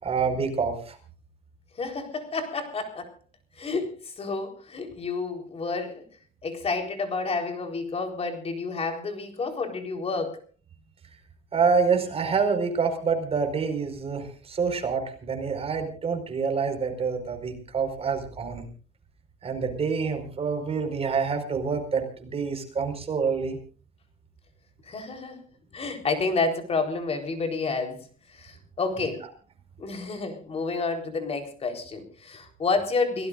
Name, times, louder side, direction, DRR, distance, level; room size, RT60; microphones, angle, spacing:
voice 1, 0.0-1.0 11.5-18.6 19.4-23.6, right 5 dB, 35° right, 5 dB, 4.9 m, -27 dB
voice 2, 1.8-3.1 3.6-6.0 6.4-10.4 24.9-25.4 25.7-28.0 28.3-29.3 29.8-33.3, left 4 dB, 35° left, 5 dB, 4.0 m, -30 dB
29.5 x 18.0 x 2.5 m, 0.39 s
cardioid pair, 110°, 17 cm